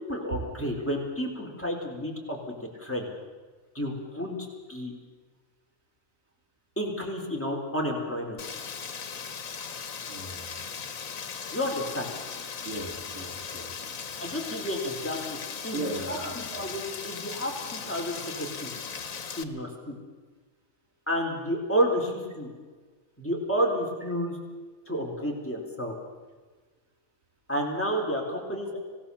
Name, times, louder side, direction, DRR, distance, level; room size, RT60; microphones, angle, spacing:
voice 1, 0.1-3.1 3.7-4.9 6.8-8.4 11.5-12.1 14.2-15.2 15.6-18.7 19.4-19.9 21.1-22.5 23.2-24.4 24.9-25.9 27.5-28.8, equal, 10° left, 1 dB, 4.1 m, -31 dB
Rain, 8.4-19.4, left 6 dB, 90° left, 1.7 m, -38 dB
voice 2, 10.1-10.6 12.6-14.0 15.7-16.8, right 3 dB, 85° right, 3 dB, 3.2 m, -37 dB
25.5 x 18.0 x 7.2 m, 1.4 s
omnidirectional pair, 1.4 m